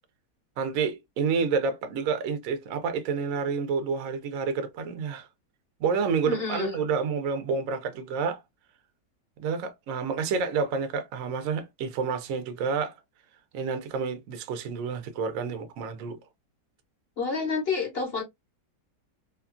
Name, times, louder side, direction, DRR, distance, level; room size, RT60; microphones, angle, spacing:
voice 1, 0.6-5.3 5.8-8.4 9.4-12.9 13.5-16.2, right 5 dB, 65° right, 0.9 m, -29 dB
voice 2, 6.2-6.7 17.2-18.2, left 5 dB, 50° left, 0.7 m, -29 dB
2.9 x 2.3 x 2.4 m
omnidirectional pair, 1.9 m